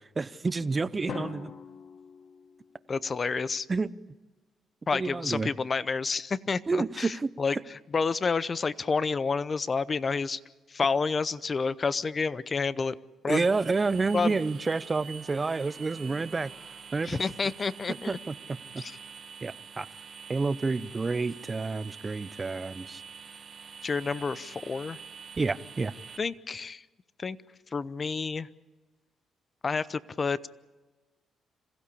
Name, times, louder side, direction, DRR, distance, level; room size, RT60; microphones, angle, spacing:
voice 1, 0.2-1.5 3.7-3.9 4.9-5.5 6.7-7.3 13.3-16.5 16.9-17.2 17.9-18.3 18.7-18.8 19.4-19.9 20.3-23.0 25.4-25.9, right 3 dB, 30° right, 15 dB, 0.8 m, -29 dB
Drum, 1.1-3.1, left 6 dB, 55° left, 1.5 m, -42 dB
voice 2, 2.9-3.7 4.9-7.6 7.9-10.4 10.7-13.0 13.2-13.4 14.1-14.3 17.0-18.2 18.8-19.0 23.8-25.0 26.2-26.8 27.2-27.4 27.7-28.5 29.6-30.5, left 4 dB, 35° left, 17 dB, 0.7 m, -29 dB
sound 1, 13.3-26.2, right 6 dB, 50° right, 1.9 m, -46 dB
27.0 x 16.0 x 8.5 m, 1.2 s
cardioid pair, 85°, 0 cm